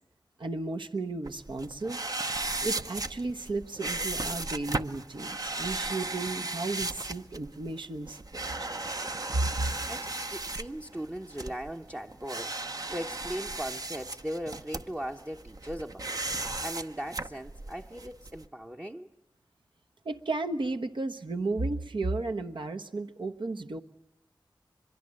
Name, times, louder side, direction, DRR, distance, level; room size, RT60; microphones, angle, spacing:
voice 1, 0.4-2.0 2.6-8.4 9.3-9.7 20.0-23.8, right 2 dB, 70° right, 1.2 m, -33 dB
sound 1, 1.2-18.4, right 2 dB, 45° right, 0.8 m, -36 dB
voice 2, 9.5-16.1 16.6-19.1, equal, 20° right, 0.9 m, -39 dB
24.0 x 22.5 x 7.6 m
wide cardioid pair, 50°, 8 cm